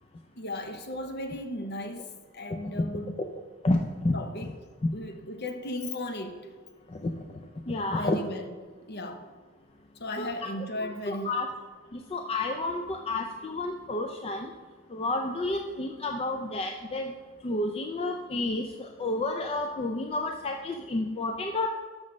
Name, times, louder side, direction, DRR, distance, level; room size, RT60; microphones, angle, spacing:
voice 1, 0.4-3.3 4.1-4.5 4.9-6.5 7.9-8.6 8.9-9.3 9.9-11.4, left 1 dB, 50° left, 0.8 m, -36 dB
voice 2, 3.6-4.2 6.9-7.1 7.7-8.2 10.2-10.3 11.1-11.5 11.9-14.5 14.9-17.1 17.4-21.7, left 2 dB, 25° left, 0.4 m, -30 dB
6.2 x 5.9 x 6.3 m
head